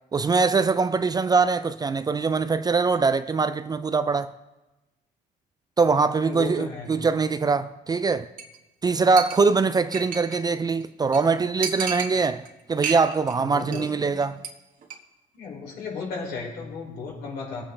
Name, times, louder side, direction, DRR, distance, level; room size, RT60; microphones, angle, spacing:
voice 1, 0.1-4.3 5.8-8.3 8.8-14.4, right 4 dB, 25° right, 0.4 m, -23 dB
voice 2, 6.2-6.9 13.4-14.2 15.3-17.6, left 5 dB, 65° left, 4.6 m, -35 dB
Chink clink, 8.4-8.6 8.8-8.9 9.2-10.5 10.8-10.9 11.1-11.2 11.6-12.5 12.8-13.3 13.6-13.9 14.2-14.5 14.8-15.0, right 6 dB, 55° right, 1.5 m, -32 dB
19.5 x 8.7 x 3.3 m
cardioid pair, 110°, 17 cm